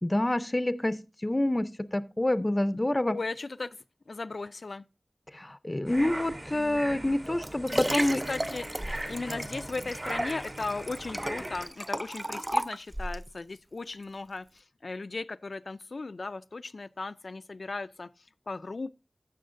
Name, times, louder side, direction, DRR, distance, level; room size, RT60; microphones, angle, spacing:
voice 1, 0.0-3.2 5.3-8.2, left 1 dB, 30° left, 0.6 m, -27 dB
voice 2, 3.1-3.8 4.1-4.8 7.7-8.0 8.3-8.6 9.1-14.5 14.8-18.1 18.5-18.9, left 3 dB, 75° left, 0.4 m, -36 dB
sound 1, 5.9-11.7, right 1 dB, 45° right, 2.5 m, -39 dB
Liquid, 7.0-13.3 13.9-14.0, right 1 dB, 15° right, 0.4 m, -34 dB
15.0 x 6.4 x 2.6 m
wide cardioid pair, 60°, 0 cm